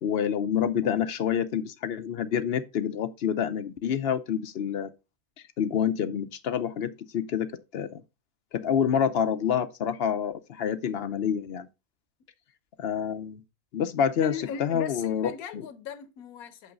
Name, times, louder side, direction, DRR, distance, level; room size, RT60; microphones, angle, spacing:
voice 1, 0.0-4.9 5.6-8.0 8.5-11.7 12.8-13.4 13.7-15.3, left 8 dB, 55° left, 0.8 m, -27 dB
voice 2, 14.2-16.7, left 8 dB, 90° left, 1.2 m, -38 dB
6.2 x 5.6 x 3.9 m
omnidirectional pair, 1.5 m